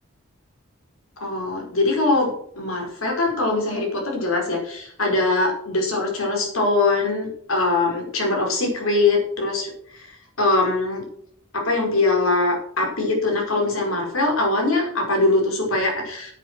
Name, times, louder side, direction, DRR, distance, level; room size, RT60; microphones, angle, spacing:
voice 1, 1.2-10.1 10.4-11.0 11.5-16.3, left 2 dB, 80° left, 0 dB, 5.1 m, -22 dB
9.4 x 8.4 x 6.2 m, 0.65 s
head